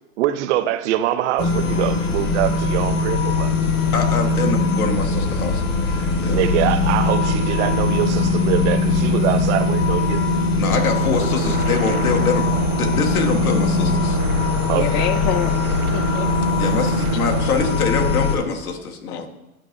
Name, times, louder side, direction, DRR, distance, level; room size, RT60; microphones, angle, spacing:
voice 1, 0.2-3.5 5.9-10.2 14.7-15.1, right 12 dB, 55° right, 0.6 m, -24 dB
sound 1, 1.4-18.4, left 3 dB, 60° left, 1.5 m, -20 dB
voice 2, 3.9-6.4 10.6-12.5 12.8-14.2 16.6-19.3, left 5 dB, 90° left, 1.4 m, -24 dB
sound 2, 10.7-17.7, right 9 dB, 85° right, 1.0 m, -33 dB
voice 3, 14.7-16.3 19.1-19.3, left 8 dB, 30° left, 0.4 m, -27 dB
11.5 x 4.7 x 2.6 m
hypercardioid pair, 135°, 42 cm